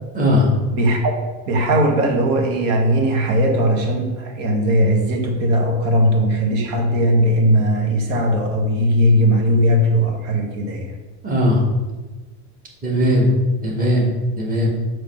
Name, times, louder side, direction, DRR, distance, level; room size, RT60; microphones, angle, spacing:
voice 1, 0.1-0.5 11.2-11.6 12.8-13.3 13.6-14.1 14.4-14.7, left 1 dB, 20° right, -2 dB, 1.6 m, -18 dB
voice 2, 0.7-1.1 1.5-10.9, equal, 75° right, 2 dB, 1.4 m, -18 dB
6.9 x 3.2 x 5.4 m, 1.2 s
supercardioid pair, 135°, 37 cm